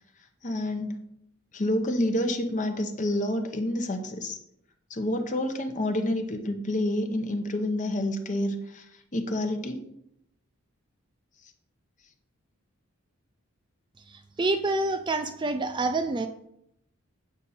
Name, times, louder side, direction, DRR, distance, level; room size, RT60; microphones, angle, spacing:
voice 1, 0.4-1.0 1.5-4.4 4.9-8.8 9.1-9.8, left 1 dB, 35° left, 6 dB, 0.8 m, -28 dB
voice 2, 14.1-16.3, right 2 dB, 20° right, 8 dB, 0.3 m, -27 dB
8.2 x 5.1 x 4.3 m, 0.76 s
head